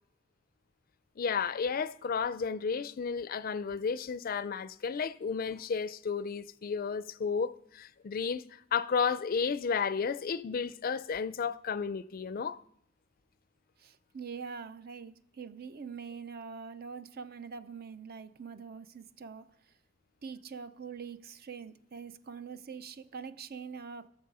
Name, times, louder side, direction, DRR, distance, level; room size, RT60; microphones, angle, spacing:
voice 1, 1.2-12.6, left 6 dB, 50° left, 0.4 m, -32 dB
voice 2, 13.8-19.5 20.2-24.1, right 5 dB, 50° right, 0.6 m, -44 dB
16.0 x 7.2 x 5.5 m
head